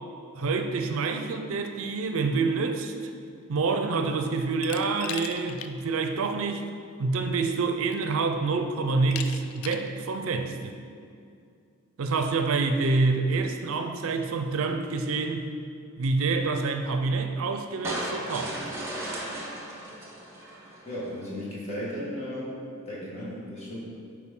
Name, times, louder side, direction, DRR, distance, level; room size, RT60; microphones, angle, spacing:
voice 1, 0.3-2.9 3.5-6.6 7.0-10.8 12.0-15.5 16.0-18.6, right 4 dB, 75° right, 6 dB, 0.4 m, -27 dB
Glass, 4.6-5.7 6.1-6.2 7.3-7.4 7.9-8.3 9.1-9.9, left 8 dB, 80° left, 0.4 m, -38 dB
sound 1, 17.8-21.1, right 1 dB, 10° right, 0.9 m, -35 dB
voice 2, 20.9-22.5 22.9-23.8, equal, 30° left, -7 dB, 1.7 m, -35 dB
8.3 x 4.7 x 3.7 m, 2.4 s
head